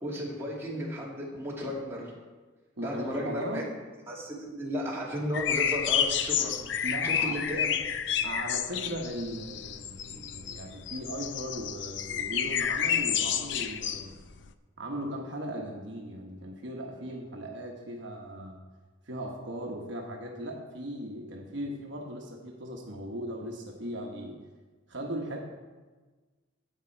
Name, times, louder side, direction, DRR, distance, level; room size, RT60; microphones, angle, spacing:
voice 1, 0.0-2.1 2.8-3.6 4.1-7.8, equal, 15° right, -5 dB, 2.2 m, -34 dB
voice 2, 2.8-3.7 6.8-7.4 8.2-14.1 14.8-18.6 19.0-24.4 24.9-25.4, right 1 dB, 65° right, 0 dB, 1.1 m, -38 dB
sound 1, 5.3-14.5, left 8 dB, 65° left, 0.5 m, -30 dB
10.5 x 8.4 x 4.5 m, 1.3 s
head